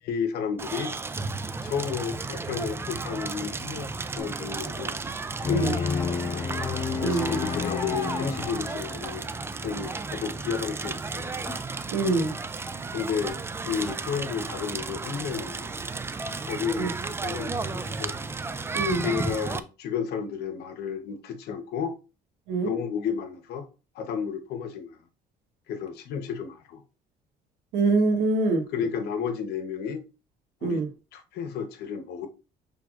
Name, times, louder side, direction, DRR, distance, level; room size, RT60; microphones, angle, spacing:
voice 1, 0.1-0.9 1.6-5.0 5.5-6.4 7.0-9.3 9.6-11.4 12.9-13.4 13.6-15.7 16.4-16.9 17.2-18.2 19.0-21.9 22.6-23.7 23.9-25.0 25.7-26.8 28.7-30.0 30.6-30.8 31.1-32.3, left 7 dB, 75° left, 0.9 m, -32 dB
Crackle, 0.6-19.6, right 3 dB, 15° right, 0.3 m, -33 dB
sound 1, 4.2-4.3 4.8-4.9 5.4-5.5 6.0-6.1 6.6-6.7 7.2-7.3 7.8-7.9 8.4-8.6 9.0-9.2 9.6-9.8 10.2-10.4 10.8-11.0 11.5-11.6 12.1-12.2 12.7-12.8 13.3-13.4 13.9-14.0 14.5-14.6 15.1-15.2 15.7-15.8 16.3-16.4 16.9-17.0, left 1 dB, 5° left, 1.3 m, -42 dB
sound 2, 5.4-9.2, left 6 dB, 30° left, 0.6 m, -30 dB
voice 2, 7.0-7.4 11.9-12.3 16.8-16.9 18.7-19.0 22.5-22.7 27.7-28.6 30.6-30.9, right 3 dB, 90° right, 1.1 m, -24 dB
6.0 x 3.4 x 2.4 m
cardioid pair, 110°, 17 cm